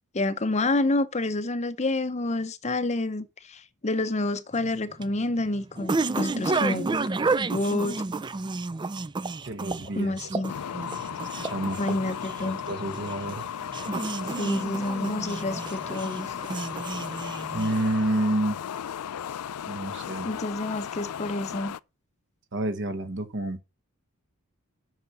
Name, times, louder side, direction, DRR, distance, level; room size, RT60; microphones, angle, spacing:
voice 1, 0.1-7.0 7.5-8.0 9.9-10.5 11.8-12.6 14.4-16.3 20.2-21.7, left 2 dB, 30° left, 0.7 m, -28 dB
sound 1, 4.5-18.1, right 3 dB, 20° right, 0.4 m, -31 dB
voice 2, 9.4-10.1 11.4-11.8 12.4-13.4 17.5-18.6 19.7-20.3 22.5-23.6, right 1 dB, 55° right, 1.2 m, -29 dB
sound 2, 10.5-21.8, left 9 dB, 85° left, 0.4 m, -35 dB
7.8 x 5.8 x 6.8 m
head